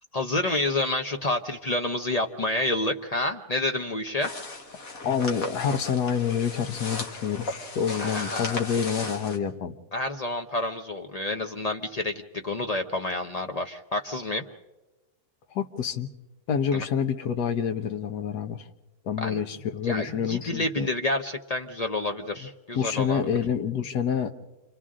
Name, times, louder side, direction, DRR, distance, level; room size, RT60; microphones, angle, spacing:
voice 1, 0.1-4.3 8.0-8.7 9.9-14.4 16.7-16.8 19.2-19.4 19.8-23.2, left 2 dB, 40° left, 5 dB, 0.5 m, -29 dB
sound 1, 4.2-9.4, left 2 dB, 60° left, 2.0 m, -36 dB
voice 2, 5.0-9.8 15.5-16.1 16.5-18.7 19.0-20.9 22.7-24.3, left 7 dB, 80° left, 8 dB, 1.5 m, -27 dB
29.5 x 25.5 x 3.7 m, 1.1 s
omnidirectional pair, 1.7 m